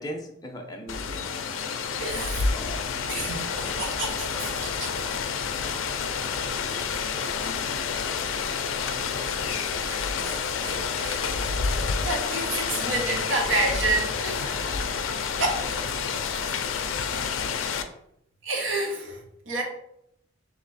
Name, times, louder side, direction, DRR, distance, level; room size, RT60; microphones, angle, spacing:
voice 1, 0.0-1.6 2.1-2.8 6.7-6.8, equal, 20° left, 1 dB, 0.6 m, -39 dB
Rain, 0.9-17.8, left 6 dB, 85° left, 0.4 m, -29 dB
sound 1, 1.9-17.4, left 1 dB, 40° right, 0.8 m, -45 dB
voice 2, 2.0-2.8 3.1-5.0 7.2-7.3 8.9-9.0 9.7-11.3 11.8-15.8 16.1-16.4 18.4-19.6, right 2 dB, 70° right, 1 dB, 1.0 m, -31 dB
3.3 x 3.0 x 4.0 m, 0.74 s
head